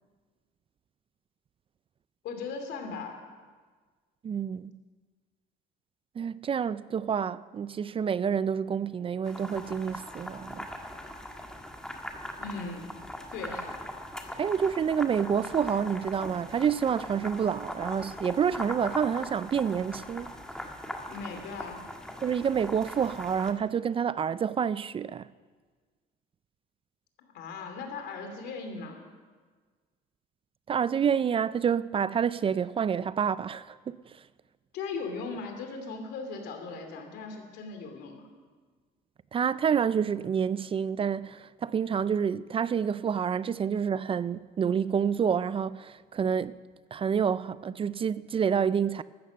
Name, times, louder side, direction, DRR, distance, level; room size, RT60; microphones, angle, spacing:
voice 1, 2.2-3.2 12.4-12.9 13.3-13.7 21.1-21.9 27.3-29.0 34.7-38.2, left 4 dB, 80° left, 2.9 m, -38 dB
voice 2, 4.2-4.8 6.2-10.7 14.3-20.3 22.2-25.3 30.7-34.2 39.3-46.6 46.9-49.0, right 7 dB, 30° right, 0.4 m, -28 dB
sound 1, 9.3-23.5, left 1 dB, 5° left, 1.8 m, -40 dB
15.5 x 13.0 x 6.4 m
cardioid pair, 110°, 17 cm